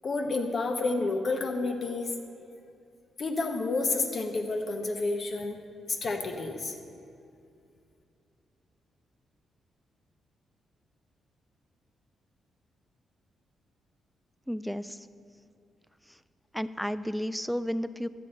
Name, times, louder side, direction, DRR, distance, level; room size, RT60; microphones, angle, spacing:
voice 1, 0.0-2.1 3.2-5.6 5.9-6.7, left 3 dB, 50° left, 4 dB, 1.0 m, -30 dB
voice 2, 14.5-15.1 16.1-16.2 16.5-18.1, equal, ahead, 14 dB, 0.3 m, -32 dB
12.5 x 8.2 x 4.3 m, 2.5 s
cardioid pair, 100°, 0 cm